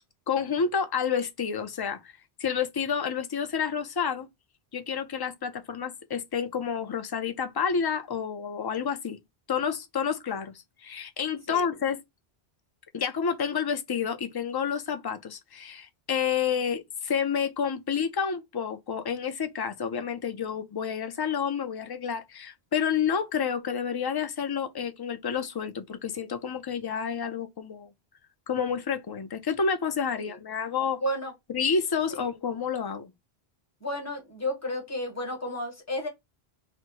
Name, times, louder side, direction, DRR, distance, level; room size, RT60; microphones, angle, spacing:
voice 1, 0.3-2.0 2.4-4.3 4.7-9.2 9.5-10.5 10.8-12.0 12.9-27.9 28.5-31.0 31.5-33.1, left 6 dB, 40° left, 0.3 m, -29 dB
voice 2, 31.0-31.3 33.8-36.1, equal, 15° left, 1.3 m, -32 dB
4.2 x 2.0 x 4.5 m
omnidirectional pair, 1.0 m